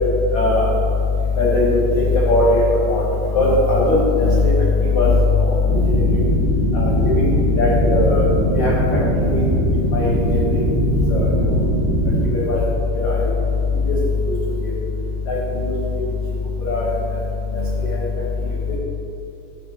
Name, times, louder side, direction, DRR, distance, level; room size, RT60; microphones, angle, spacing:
voice 1, 0.3-0.7 1.4-3.0 3.3-4.5 4.8-5.5 5.8-5.9 6.7-7.3 7.6-8.2 8.5-8.7 9.2-9.4 9.9-10.6 11.1-11.3 12.2-12.6 12.9-13.2 13.8-13.9 14.2-14.3 14.6-14.7 15.3-15.7 16.7-16.9 17.9-18.0, left 2 dB, 80° left, -6 dB, 1.6 m, -18 dB
sound 1, 5.7-12.3, right 1 dB, 70° right, 2.8 m, -20 dB
11.5 x 7.9 x 2.9 m, 2.9 s
omnidirectional pair, 5.2 m